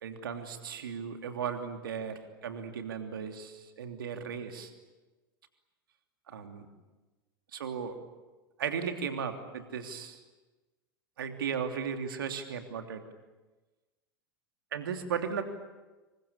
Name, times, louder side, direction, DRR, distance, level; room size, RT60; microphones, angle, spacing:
voice 1, 0.0-4.7 6.3-6.7 7.5-8.0 8.6-10.2 11.2-13.0 14.7-15.4, right 7 dB, 75° right, 6 dB, 3.1 m, -36 dB
27.5 x 23.5 x 8.7 m, 1.2 s
figure-of-eight pair, 80°, 12 cm